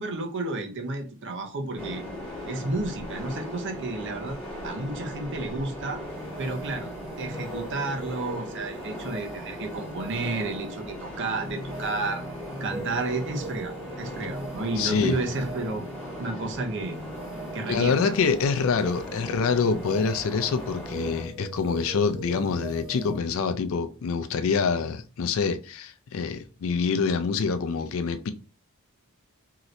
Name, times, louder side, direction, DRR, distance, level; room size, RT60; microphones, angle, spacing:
voice 1, 0.0-2.0 2.5-6.0 6.4-6.9 7.2-12.2 12.6-15.8 16.2-17.0 17.5-18.2, right 2 dB, 55° right, 0.6 m, -31 dB
sound 1, 1.7-21.2, equal, 5° left, 1.7 m, -39 dB
sound 2, 6.0-23.2, right 1 dB, 25° right, 1.7 m, -41 dB
voice 2, 14.8-15.2 17.7-28.3, left 5 dB, 65° left, 0.4 m, -26 dB
3.1 x 2.8 x 2.5 m
head